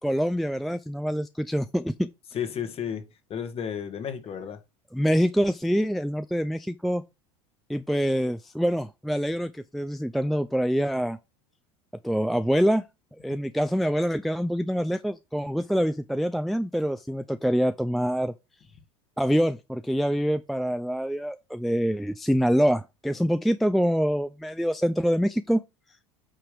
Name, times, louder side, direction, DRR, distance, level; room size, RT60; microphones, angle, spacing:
voice 1, 0.0-2.1 4.9-7.0 7.7-11.2 12.0-12.8 13.2-18.3 19.2-25.6, equal, ahead, 0.3 m, -25 dB
voice 2, 2.3-4.6, left 8 dB, 40° left, 1.4 m, -33 dB
8.9 x 3.0 x 5.1 m
hypercardioid pair, 85°, 16 cm